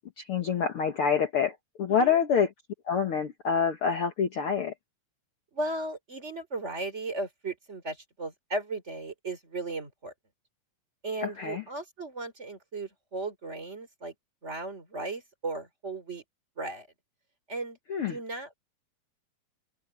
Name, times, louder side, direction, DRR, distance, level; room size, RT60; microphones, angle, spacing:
voice 1, 0.2-2.5 2.9-4.7 11.2-11.6 17.9-18.2, left 7 dB, 90° left, 1.2 m, -27 dB
voice 2, 5.5-10.1 11.0-14.1 14.4-16.2 16.6-16.9 17.5-17.8 18.1-18.5, right 2 dB, 15° right, 3.6 m, -36 dB
omnidirectional pair, 4.6 m